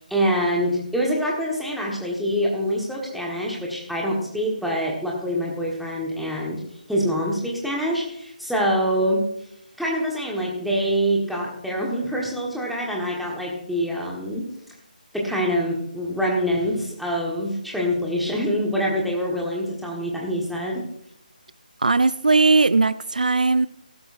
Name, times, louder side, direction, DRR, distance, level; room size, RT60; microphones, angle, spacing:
voice 1, 0.1-6.6 6.9-9.3 9.8-14.5 15.1-20.9, equal, ahead, -3 dB, 1.5 m, -25 dB
voice 2, 21.8-23.7, right 3 dB, 65° right, 16 dB, 0.4 m, -18 dB
16.0 x 12.0 x 2.7 m, 0.73 s
figure-of-eight pair, 150°, 5 cm